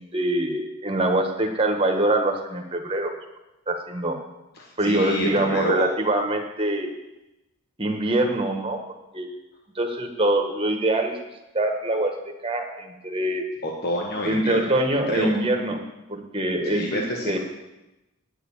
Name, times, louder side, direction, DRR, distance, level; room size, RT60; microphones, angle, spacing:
voice 1, 0.1-3.1 3.7-4.2 4.8-6.9 7.8-8.8 9.1-9.3 9.7-11.2 11.5-13.4 14.2-15.8 16.1-17.4, right 1 dB, 25° right, 3 dB, 1.3 m, -24 dB
voice 2, 4.6-5.8 13.6-14.6 14.9-15.3 16.6-17.4, left 1 dB, 45° left, -1 dB, 1.4 m, -28 dB
9.2 x 6.8 x 8.6 m, 0.98 s
head